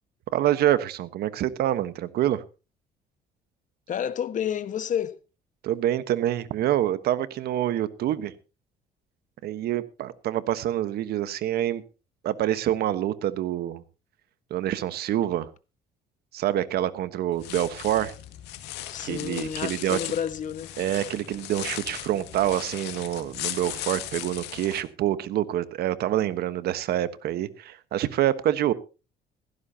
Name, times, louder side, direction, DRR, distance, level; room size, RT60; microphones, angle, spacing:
voice 1, 0.3-2.4 5.6-8.3 9.4-11.8 12.2-13.8 14.5-15.5 16.3-18.1 19.0-20.0 20.8-28.7, right 12 dB, 70° right, 1.3 m, -26 dB
voice 2, 3.9-5.2 18.9-20.7, left 9 dB, 50° left, 1.4 m, -30 dB
sound 1, 17.3-24.8, left 13 dB, 90° left, 2.1 m, -37 dB
17.0 x 15.5 x 2.8 m
cardioid pair, 110°, 17 cm